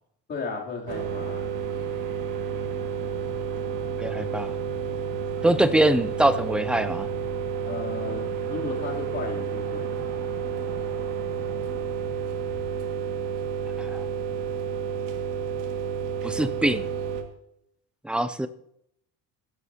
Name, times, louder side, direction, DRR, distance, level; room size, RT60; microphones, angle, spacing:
voice 1, 0.3-1.5 7.6-9.9, left 4 dB, 30° left, -2 dB, 3.1 m, -35 dB
sound 1, 0.9-17.2, right 7 dB, 75° right, 2.0 m, -30 dB
voice 2, 4.0-4.6 5.4-7.1 13.8-14.1 16.2-16.8 18.0-18.5, right 1 dB, 5° right, 12 dB, 0.3 m, -23 dB
19.0 x 11.0 x 2.8 m, 0.73 s
cardioid pair, 155°, 33 cm